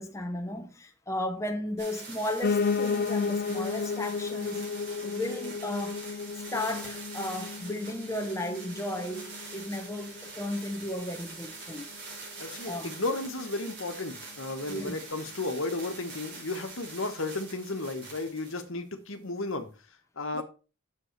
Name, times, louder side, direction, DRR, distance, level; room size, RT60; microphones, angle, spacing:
voice 1, 0.0-4.7 5.0-6.2 6.5-11.9 12.6-12.9 14.7-15.0 20.3-20.4, left 1 dB, 15° left, 0.8 m, -35 dB
sound 1, 1.8-18.6 19.5-19.6, right 3 dB, 50° right, 4.6 m, -44 dB
Piano, 2.4-11.5 11.9-13.1 13.4-13.5 13.7-13.8 14.0-14.1 14.7-14.8, left 5 dB, 45° left, 0.4 m, -33 dB
voice 2, 12.4-19.7 20.2-20.4, left 2 dB, 60° left, 1.4 m, -34 dB
7.8 x 7.1 x 4.6 m
head